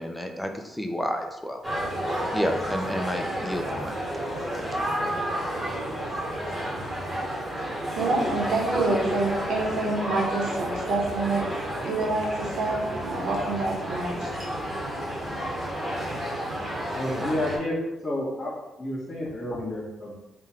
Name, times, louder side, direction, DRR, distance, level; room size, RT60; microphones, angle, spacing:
voice 1, 0.0-1.6 2.3-4.8, equal, 5° left, 4 dB, 0.5 m, -31 dB
sound 1, 1.6-17.6, equal, 15° right, 1.1 m, -31 dB
voice 2, 8.0-11.5 11.8-14.3, right 2 dB, 75° right, -1 dB, 1.0 m, -27 dB
voice 3, 16.9-17.7 18.0-18.5 18.8-20.1, left 1 dB, 25° left, -10 dB, 1.4 m, -30 dB
3.6 x 2.3 x 4.3 m, 0.99 s
cardioid pair, 90°, 0 cm